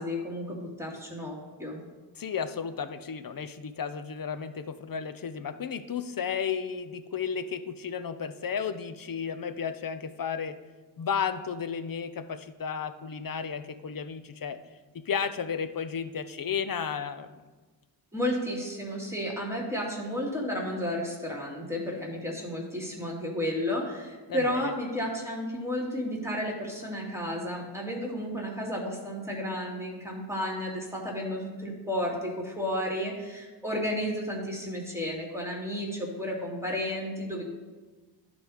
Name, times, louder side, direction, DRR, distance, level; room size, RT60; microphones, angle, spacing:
voice 1, 0.0-1.8 18.1-37.5, left 1 dB, 5° right, -1 dB, 2.7 m, -32 dB
voice 2, 2.2-10.6 11.0-14.6 14.9-17.3 24.3-24.7, left 6 dB, 50° left, 11 dB, 0.7 m, -33 dB
11.0 x 4.1 x 5.0 m, 1.3 s
cardioid pair, 45°, 46 cm